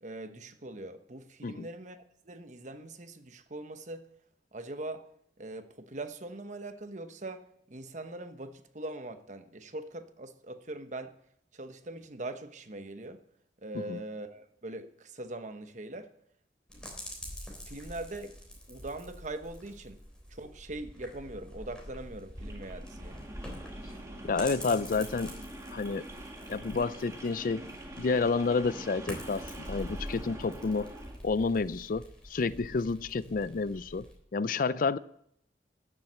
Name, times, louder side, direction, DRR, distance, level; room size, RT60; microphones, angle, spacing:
voice 1, 0.0-4.0 4.5-5.0 5.4-11.1 11.5-13.2 13.6-16.1 17.7-18.4 18.7-20.0 20.3-23.2, right 2 dB, 40° right, 1.0 m, -42 dB
sound 1, 16.7-34.1, equal, 5° left, 3.4 m, -46 dB
sound 2, 22.3-31.2, right 1 dB, 15° right, 1.8 m, -45 dB
voice 2, 24.2-25.4 25.7-26.0 26.5-30.9 31.2-34.1 34.3-35.0, left 4 dB, 50° left, 0.4 m, -30 dB
13.5 x 7.4 x 7.9 m
head